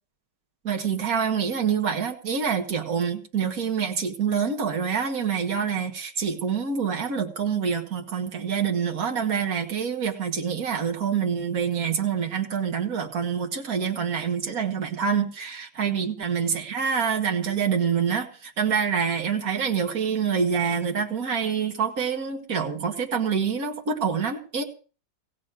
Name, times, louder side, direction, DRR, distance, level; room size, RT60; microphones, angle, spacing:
voice 1, 0.6-24.6, right 7 dB, 55° right, 3 dB, 2.2 m, -26 dB
16.5 x 6.3 x 9.1 m, 0.38 s
omnidirectional pair, 1.9 m